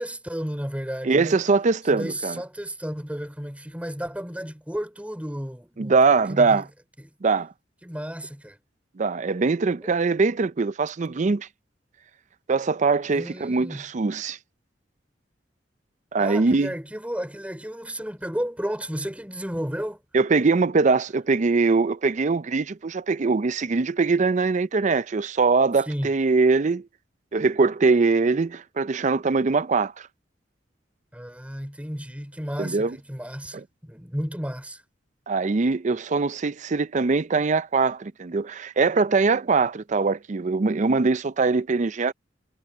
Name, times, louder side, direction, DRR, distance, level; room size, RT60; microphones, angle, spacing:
voice 1, 0.0-1.4 1.9-6.6 7.0-7.1 7.8-8.6 9.8-10.0 13.1-13.8 16.2-20.0 25.8-26.2 31.1-34.8, equal, 5° right, 4.1 m, -33 dB
voice 2, 1.0-2.4 5.8-6.6 7.2-7.5 9.0-11.5 12.5-14.4 16.1-16.7 20.1-26.9 27.3-30.1 32.6-33.0 35.3-42.1, right 4 dB, 40° right, 0.5 m, -22 dB
head